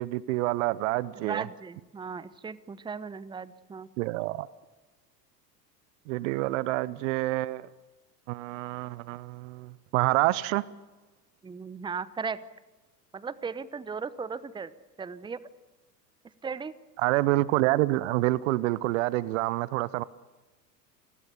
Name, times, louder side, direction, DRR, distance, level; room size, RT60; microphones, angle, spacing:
voice 1, 0.0-1.5 4.0-4.5 6.1-7.7 8.3-10.6 17.0-20.0, right 19 dB, 50° right, 20 dB, 0.8 m, -27 dB
voice 2, 1.2-3.9 11.4-12.4 13.1-14.7 15.0-15.4 16.4-16.7, right 5 dB, 10° right, 17 dB, 0.9 m, -36 dB
29.5 x 20.0 x 7.0 m, 1.2 s
figure-of-eight pair, 85°, 49 cm